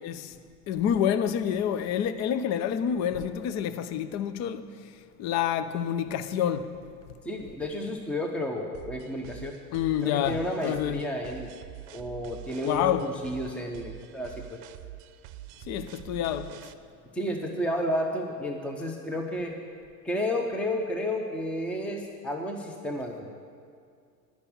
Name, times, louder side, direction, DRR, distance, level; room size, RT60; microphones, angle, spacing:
voice 1, 0.0-0.3 0.7-4.6 5.2-6.7 9.7-10.4 10.6-11.0 12.6-13.1 15.7-16.6, left 9 dB, 35° left, 0.6 m, -28 dB
voice 2, 7.2-9.6 10.0-11.5 11.9-14.6 17.1-19.6 20.0-23.3, left 1 dB, 5° left, 0.7 m, -31 dB
sound 1, 8.7-16.7, right 14 dB, 60° right, 0.7 m, -45 dB
11.5 x 6.0 x 8.5 m
hypercardioid pair, 105°, 49 cm